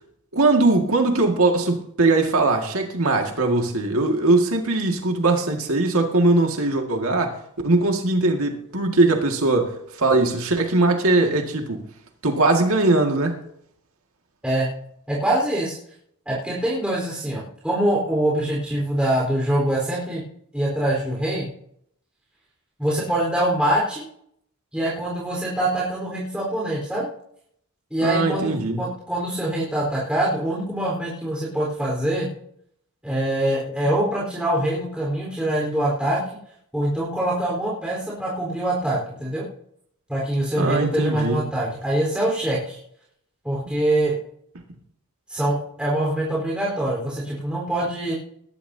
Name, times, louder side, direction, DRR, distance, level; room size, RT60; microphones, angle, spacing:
voice 1, 0.3-7.4 7.6-11.8 12.2-13.4 28.0-28.8 40.6-41.4, right 2 dB, 75° right, 3 dB, 2.0 m, -20 dB
voice 2, 15.1-15.8 16.3-20.2 20.5-21.5 22.8-24.0 24.7-27.1 27.9-32.3 33.0-36.2 36.7-39.4 40.1-42.8 43.4-44.1 45.3-48.1, right 1 dB, 5° right, -5 dB, 4.2 m, -24 dB
20.0 x 12.0 x 2.8 m, 0.68 s
head